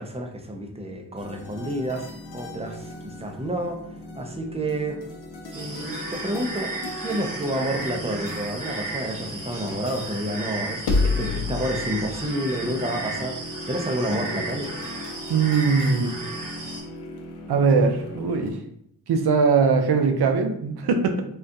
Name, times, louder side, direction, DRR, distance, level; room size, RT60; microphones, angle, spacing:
voice 1, 0.0-2.1 2.3-3.8 4.1-5.0 5.5-14.7, right 1 dB, 15° right, 3 dB, 0.5 m, -29 dB
sound 1, 1.2-18.5, left 3 dB, 80° left, 0.6 m, -34 dB
sound 2, 5.5-16.8, right 2 dB, 55° right, 1.0 m, -35 dB
voice 2, 15.3-16.1 17.5-18.6 19.1-21.2, right 5 dB, 75° right, 5 dB, 0.6 m, -21 dB
3.6 x 2.3 x 2.6 m, 0.72 s
cardioid pair, 70°, 39 cm